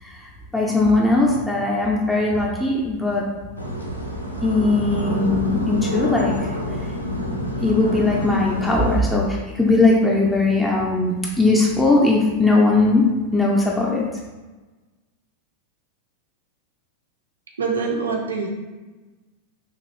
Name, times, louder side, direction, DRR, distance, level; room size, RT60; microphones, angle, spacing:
voice 1, 0.0-3.2 4.4-6.6 7.6-13.1 13.3-14.1, left 2 dB, 5° left, -4 dB, 0.4 m, -19 dB
sound 1, 3.6-9.0, equal, 85° left, 0.4 m, -27 dB
voice 2, 17.6-18.5, right 4 dB, 70° right, 1 dB, 0.5 m, -24 dB
3.0 x 2.5 x 3.0 m, 1.2 s
figure-of-eight pair, 90°, 0 cm